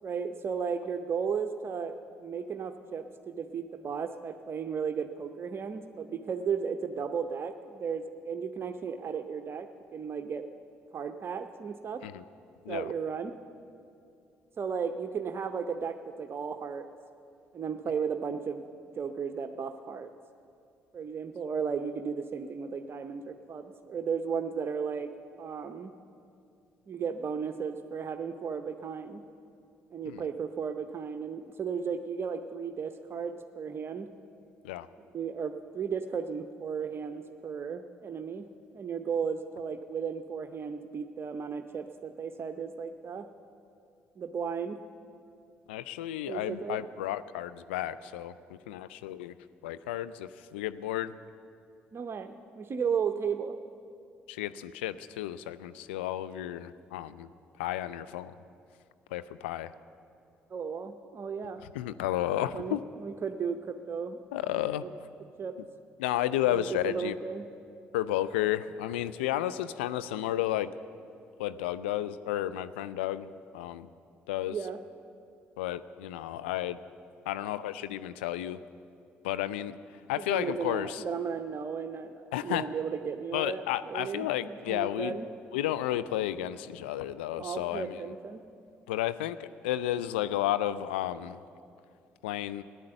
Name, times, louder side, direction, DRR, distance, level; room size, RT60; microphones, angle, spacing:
voice 1, 0.0-10.5 10.9-12.1 12.7-13.3 14.6-16.9 17.5-18.6 19.0-20.1 20.9-25.1 25.4-25.9 26.9-29.2 29.9-34.1 35.1-38.5 38.7-43.3 44.2-44.8 46.2-46.8 51.9-53.6 60.5-61.6 62.5-64.2 64.8-64.9 65.4-65.6 66.5-67.5 74.5-74.8 80.2-85.3 87.3-88.4, right 6 dB, 40° right, 7 dB, 0.7 m, -35 dB
voice 2, 45.7-49.3 49.6-51.1 54.3-57.3 57.6-58.3 59.1-59.7 61.7-62.8 64.3-64.8 66.0-67.1 67.9-70.7 71.4-73.9 74.3-74.6 75.6-76.8 77.3-78.6 79.2-79.8 80.1-81.0 82.3-82.7 83.3-85.1 85.5-88.0 88.9-91.4 92.2-92.6, left 13 dB, 80° left, 13 dB, 0.4 m, -32 dB
15.5 x 11.0 x 7.9 m, 2.4 s
hypercardioid pair, 50°, 6 cm